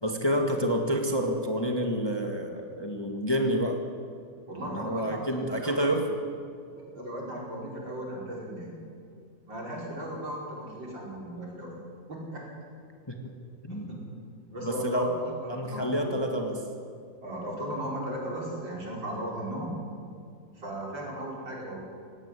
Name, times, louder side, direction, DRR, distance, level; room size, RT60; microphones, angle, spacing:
voice 1, 0.0-3.8 4.6-6.0 13.1-13.3 13.6-13.9 14.6-15.1 15.5-16.6, equal, 15° left, 3 dB, 1.5 m, -28 dB
voice 2, 4.5-6.0 6.9-8.8 9.5-11.8 12.3-12.4 13.7-14.0 14.5-16.2 17.2-19.7 20.5-21.8, right 1 dB, 80° right, -3 dB, 5.8 m, -36 dB
17.5 x 16.5 x 9.7 m, 2.3 s
omnidirectional pair, 2.0 m